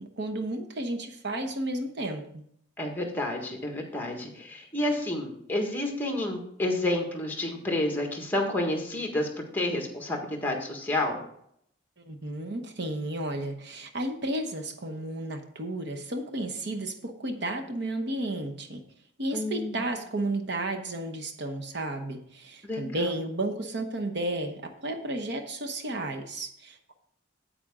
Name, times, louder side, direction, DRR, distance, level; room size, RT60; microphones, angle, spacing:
voice 1, 0.0-2.4 12.1-18.8 19.2-26.9, right 1 dB, 60° right, 5 dB, 1.0 m, -33 dB
voice 2, 2.8-9.3 9.5-11.2 19.3-19.8 22.6-23.1, left 1 dB, 10° left, 1 dB, 1.6 m, -30 dB
8.7 x 8.6 x 3.7 m, 0.70 s
head